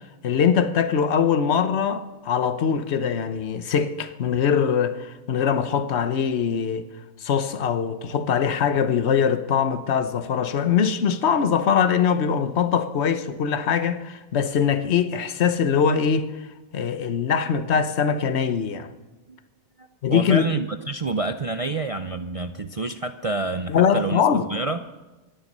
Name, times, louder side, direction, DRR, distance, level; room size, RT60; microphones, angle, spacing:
voice 1, 0.2-6.9 7.2-16.5 16.7-18.9 20.0-20.6 23.7-24.5, left 7 dB, 55° left, 1.2 m, -22 dB
voice 2, 19.8-24.8, right 3 dB, 55° right, 0.4 m, -28 dB
25.0 x 10.5 x 5.4 m
omnidirectional pair, 1.5 m